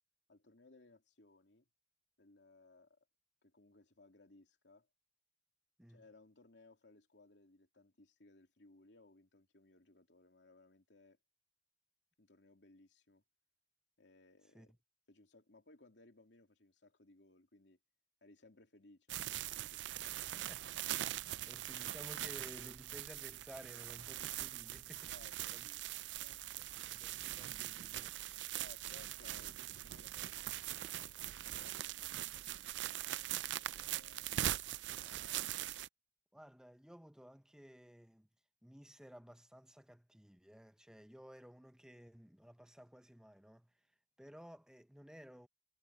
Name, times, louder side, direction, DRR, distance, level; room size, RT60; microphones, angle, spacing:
voice 1, 0.3-1.7 2.2-3.1 3.4-4.9 5.9-11.2 12.2-13.2 14.0-14.7 15.1-17.8 18.2-20.7 21.2-21.5 25.1-26.7 28.5-31.3 31.6-35.4, left 2 dB, 85° left, 2.8 m, -64 dB
voice 2, 14.4-14.8 20.3-21.1 21.5-25.1 25.5-25.7 26.9-28.2 36.3-38.3 38.6-45.5, equal, 5° right, 0.7 m, -56 dB
sound 1, 19.1-35.9, right 13 dB, 85° right, 0.4 m, -42 dB
head